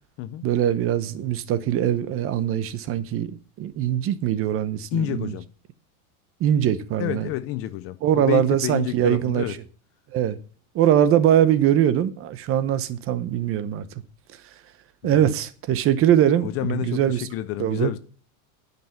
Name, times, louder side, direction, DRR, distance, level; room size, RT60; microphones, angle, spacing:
voice 1, 0.4-5.3 6.4-7.3 8.0-9.6 10.1-10.4 10.7-13.9 15.0-17.3 17.6-17.9, right 10 dB, 30° right, 0.8 m, -22 dB
voice 2, 4.9-5.5 7.0-9.6 15.0-15.3 16.4-18.0, left 14 dB, 35° left, 0.5 m, -29 dB
10.5 x 5.8 x 7.1 m
supercardioid pair, 155°, 43 cm